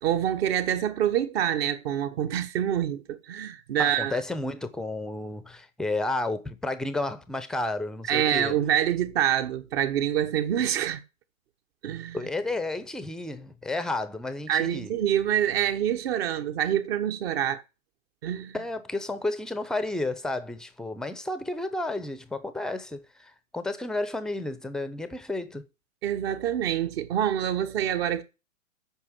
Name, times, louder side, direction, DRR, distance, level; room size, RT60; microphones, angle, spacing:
voice 1, 0.0-4.2 8.1-11.0 11.8-12.2 14.5-17.6 18.2-18.5 26.0-28.2, right 10 dB, 45° right, 1.3 m, -26 dB
voice 2, 3.8-8.6 12.1-14.9 18.5-25.6, left 2 dB, ahead, 0.6 m, -32 dB
8.8 x 5.7 x 7.3 m
hypercardioid pair, 115°, 41 cm